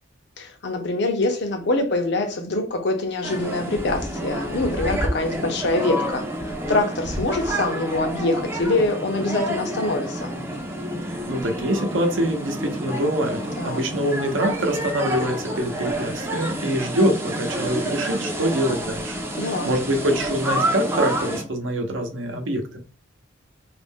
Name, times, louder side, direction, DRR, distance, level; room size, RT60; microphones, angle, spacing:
voice 1, 0.4-10.3 13.6-13.8 19.4-19.7, left 2 dB, 60° left, 0.6 m, -24 dB
sound 1, 3.2-21.4, right 1 dB, 15° right, 0.4 m, -29 dB
voice 2, 11.1-19.2 19.4-22.8, right 1 dB, 75° right, 0.8 m, -25 dB
2.5 x 2.1 x 3.5 m
head